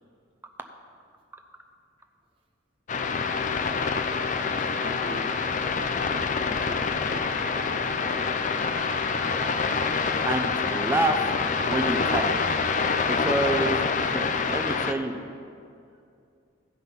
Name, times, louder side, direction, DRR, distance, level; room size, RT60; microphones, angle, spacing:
sound 1, 2.9-14.9, left 5 dB, 40° left, 0.5 m, -26 dB
voice 1, 4.2-5.5 6.4-8.3, equal, 30° right, -1 dB, 1.3 m, -43 dB
voice 2, 10.3-11.2 11.6-12.3 13.0-15.2, right 2 dB, 10° right, 5 dB, 0.7 m, -28 dB
15.0 x 5.6 x 5.7 m, 2.4 s
head